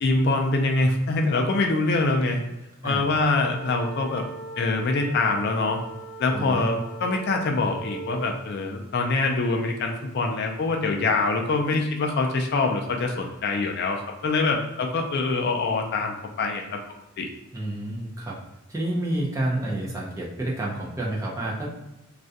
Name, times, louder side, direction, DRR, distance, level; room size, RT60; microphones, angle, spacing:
voice 1, 0.0-2.4 2.8-4.3 4.6-5.8 6.2-16.6 17.2-17.3, left 3 dB, 50° left, 2 dB, 0.3 m, -24 dB
sound 1, 3.4-8.3, right 4 dB, 70° left, 0.8 m, -40 dB
voice 2, 6.3-6.9 17.5-18.4 18.7-21.7, right 1 dB, 15° right, -4 dB, 0.5 m, -29 dB
2.4 x 2.1 x 2.6 m, 0.95 s
head